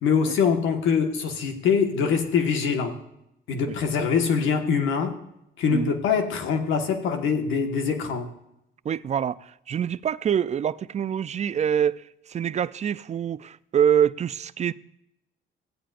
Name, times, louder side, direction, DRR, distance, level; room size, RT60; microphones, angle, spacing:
voice 1, 0.0-3.0 3.5-5.2 5.6-8.3, left 6 dB, 85° left, 1.5 m, -23 dB
voice 2, 8.8-14.7, right 8 dB, 35° right, 0.4 m, -25 dB
15.5 x 9.1 x 2.5 m
cardioid pair, 90°, 20 cm